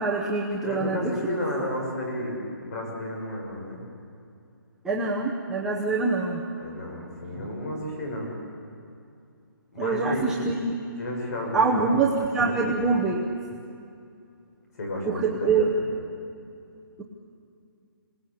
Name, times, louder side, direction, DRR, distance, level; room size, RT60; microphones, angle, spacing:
voice 1, 0.0-1.4 4.8-6.4 9.8-10.8 11.5-13.2 15.1-15.7, right 4 dB, 5° right, -3 dB, 0.8 m, -25 dB
voice 2, 0.6-3.9 6.6-8.3 9.7-10.5 11.0-12.6 14.7-15.8, left 1 dB, 45° left, 0 dB, 6.4 m, -32 dB
27.0 x 19.0 x 8.5 m, 2.5 s
hypercardioid pair, 170°, 12 cm